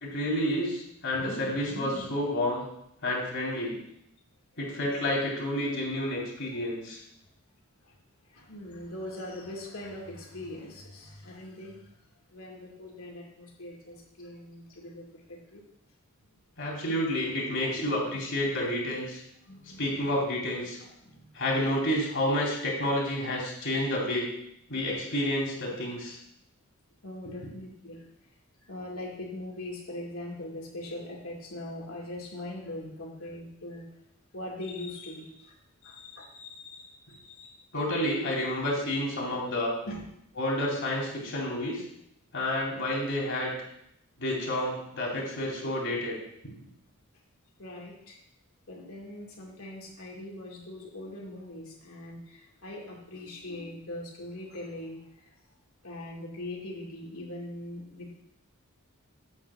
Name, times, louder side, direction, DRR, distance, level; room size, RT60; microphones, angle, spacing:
voice 1, 0.0-2.6 3.0-3.8 4.6-7.0 16.6-19.2 19.8-20.8 21.3-24.3 24.7-26.2 37.7-39.7 40.4-41.8 42.3-43.5 44.2-46.2, left 1 dB, 60° left, -3 dB, 3.0 m, -29 dB
voice 2, 8.3-11.9 12.3-15.6 19.4-20.1 20.8-21.4 27.0-28.1 28.7-34.0 34.3-37.6 39.8-40.1 47.6-48.2 48.7-55.3 55.8-58.2, left 1 dB, 75° left, -2 dB, 2.3 m, -41 dB
8.8 x 3.9 x 7.0 m, 0.76 s
head